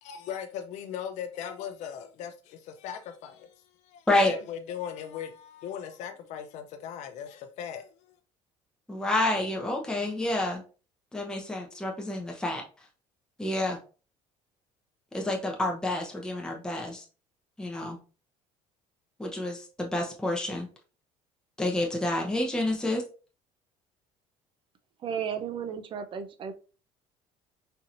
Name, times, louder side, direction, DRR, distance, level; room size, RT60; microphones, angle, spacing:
voice 1, 0.0-8.2, left 8 dB, 70° left, 0.5 m, -39 dB
voice 2, 8.9-10.6 11.1-12.6 13.4-13.8 15.1-17.0 17.6-18.0 19.2-20.7 21.6-23.0, left 1 dB, 5° left, 0.8 m, -29 dB
voice 3, 25.0-26.5, right 7 dB, 40° right, 0.6 m, -34 dB
4.3 x 2.8 x 2.6 m
cardioid pair, 115°, 13 cm